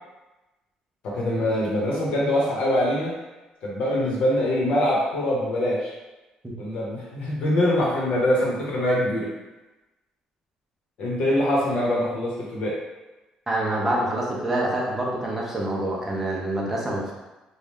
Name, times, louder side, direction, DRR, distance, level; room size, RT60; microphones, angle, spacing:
voice 1, 1.0-3.1 3.6-5.9 6.6-9.3 11.0-12.8, left 1 dB, 55° left, -4 dB, 1.1 m, -23 dB
voice 2, 13.5-17.1, right 1 dB, 10° right, -4 dB, 0.6 m, -26 dB
3.1 x 2.4 x 3.5 m, 1.1 s
cardioid pair, 175°, 2 cm